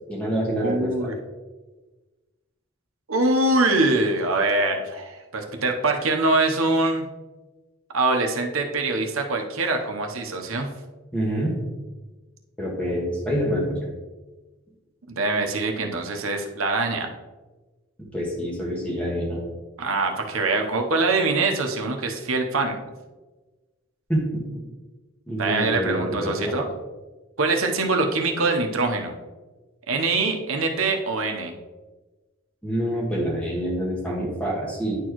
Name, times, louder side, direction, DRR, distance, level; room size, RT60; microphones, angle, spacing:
voice 1, 0.1-1.1 11.1-11.5 12.6-13.9 18.0-19.4 24.1-24.4 25.3-26.5 32.6-35.0, equal, 5° left, -4 dB, 1.6 m, -26 dB
voice 2, 0.6-1.1 3.1-7.1 7.9-10.7 15.2-17.1 19.8-22.8 25.4-26.7 27.4-29.2 29.9-31.5, right 3 dB, 80° right, 3 dB, 0.9 m, -23 dB
10.0 x 4.5 x 3.0 m, 1.2 s
head